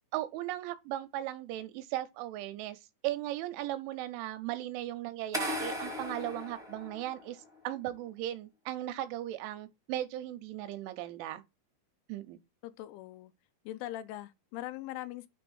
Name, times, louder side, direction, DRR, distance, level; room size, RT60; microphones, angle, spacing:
voice 1, 0.1-11.4 12.1-12.4, right 14 dB, 80° right, 3.0 m, -37 dB
sound 1, 5.3-7.4, left 1 dB, 5° right, 0.5 m, -37 dB
voice 2, 12.6-13.3 13.7-15.3, left 14 dB, 85° left, 3.1 m, -41 dB
9.2 x 3.5 x 6.2 m
omnidirectional pair, 5.7 m